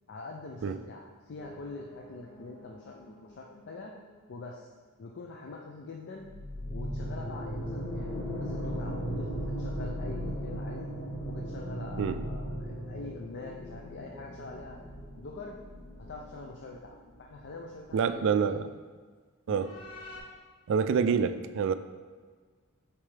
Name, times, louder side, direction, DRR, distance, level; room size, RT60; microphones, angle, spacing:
voice 1, 0.1-3.9 4.3-4.7 5.0-6.3 6.7-9.3 9.6-10.9 11.2-14.8 15.2-15.6 16.1-18.5 19.5-19.7 21.1-21.3, left 3 dB, 55° left, 0 dB, 0.5 m, -44 dB
sound 1, 1.4-4.1 6.1-17.6 17.8-17.9 19.6-20.2, equal, 75° left, 1.9 m, -38 dB
voice 2, 17.9-18.7 19.5-19.7 20.7-21.7, right 6 dB, 60° right, 11 dB, 0.3 m, -27 dB
7.2 x 4.6 x 3.3 m, 1.5 s
head